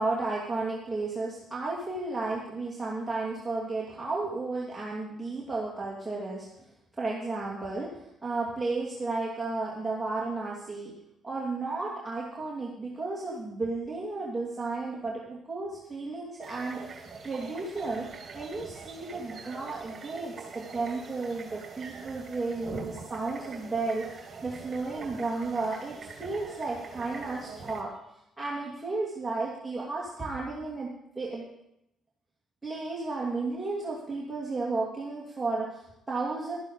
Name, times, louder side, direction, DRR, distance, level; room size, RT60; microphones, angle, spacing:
voice 1, 0.0-6.5 7.0-10.9 11.2-18.1 18.3-27.9 28.4-31.5 32.6-36.5, right 3 dB, 15° right, -5 dB, 2.6 m, -33 dB
sound 1, 16.4-27.8, right 4 dB, 45° right, 2.7 m, -44 dB
13.0 x 11.0 x 5.0 m, 0.82 s
cardioid pair, 90°, 0 cm